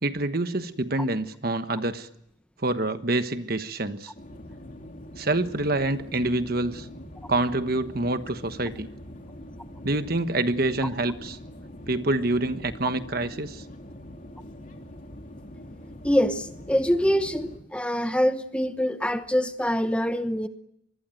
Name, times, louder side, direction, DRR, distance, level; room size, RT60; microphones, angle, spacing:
voice 1, 0.0-2.1 2.6-4.1 5.2-6.9 7.3-8.9 9.8-11.4 11.9-13.6, right 2 dB, 45° right, 10 dB, 1.3 m, -26 dB
sound 1, 4.1-17.6, left 1 dB, 40° left, 3.4 m, -43 dB
voice 2, 16.0-20.5, equal, 5° left, 9 dB, 1.0 m, -24 dB
25.5 x 21.0 x 9.3 m, 0.77 s
head